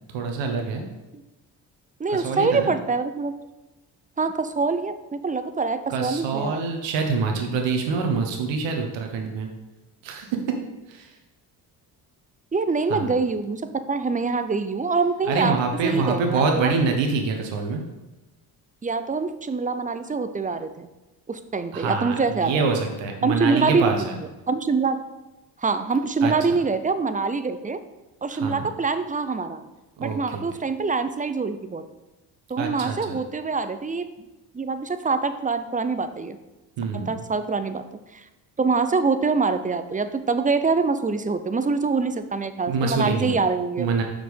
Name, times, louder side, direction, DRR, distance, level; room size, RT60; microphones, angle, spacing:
voice 1, 0.1-0.8 2.1-2.7 5.9-9.5 10.0-10.3 10.9-11.1 12.9-13.1 15.3-17.8 21.7-24.2 26.2-26.3 28.3-28.7 30.0-30.4 32.6-33.2 36.8-37.2 42.7-43.4 43.8-44.0, right 4 dB, 70° right, 3 dB, 1.2 m, -25 dB
voice 2, 2.0-3.3 4.2-6.6 12.5-13.6 13.9-15.6 15.8-16.8 18.8-20.9 21.3-22.7 23.2-24.1 24.5-25.0 25.6-27.8 28.2-29.6 30.0-31.8 32.5-34.1 34.5-36.4 36.9-37.8 38.1-38.2 38.6-43.9, right 4 dB, 15° right, 10 dB, 0.6 m, -25 dB
5.9 x 5.0 x 5.3 m, 1.0 s
hypercardioid pair, 55°, 46 cm